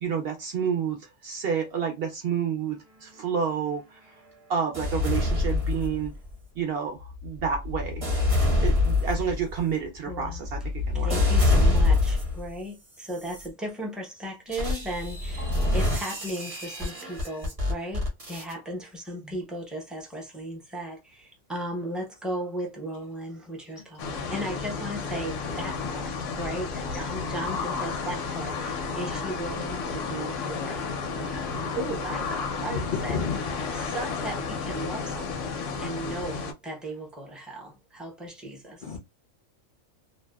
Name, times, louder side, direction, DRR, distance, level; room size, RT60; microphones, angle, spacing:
voice 1, 0.0-4.0 4.5-6.1 6.6-8.0 8.6-11.1, right 7 dB, 60° right, 0.6 m, -29 dB
sound 1, 4.7-6.3 7.0-12.5 13.1-13.5 14.5-18.5, left 2 dB, 30° right, 0.8 m, -25 dB
voice 2, 10.1-10.4 10.9-26.1 26.4-30.8 31.1-35.5 35.8-38.8, right 1 dB, ahead, 0.4 m, -36 dB
sound 2, 24.0-36.5, left 4 dB, 75° left, 0.9 m, -32 dB
voice 3, 25.3-25.9 31.0-31.7 32.6-33.9 38.8-39.0, left 5 dB, 55° left, 0.6 m, -34 dB
2.6 x 2.1 x 2.2 m
omnidirectional pair, 1.3 m